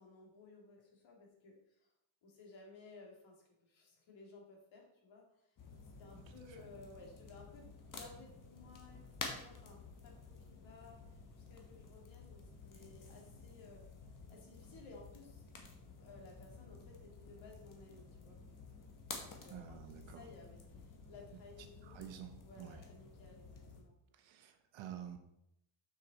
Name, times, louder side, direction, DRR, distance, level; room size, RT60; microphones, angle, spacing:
voice 1, 0.0-1.9 2.2-5.5 6.0-9.0 9.3-11.0 11.3-13.9 14.3-15.4 16.0-18.4 19.2-24.0, left 3 dB, 65° left, 0 dB, 2.5 m, -58 dB
sound 1, 5.6-23.8, left 4 dB, 40° left, 1.4 m, -52 dB
voice 2, 19.5-20.3 21.8-22.8 24.1-25.2, right 9 dB, 65° right, 8 dB, 1.1 m, -50 dB
7.1 x 6.4 x 4.1 m, 0.80 s
cardioid pair, 155°, 50 cm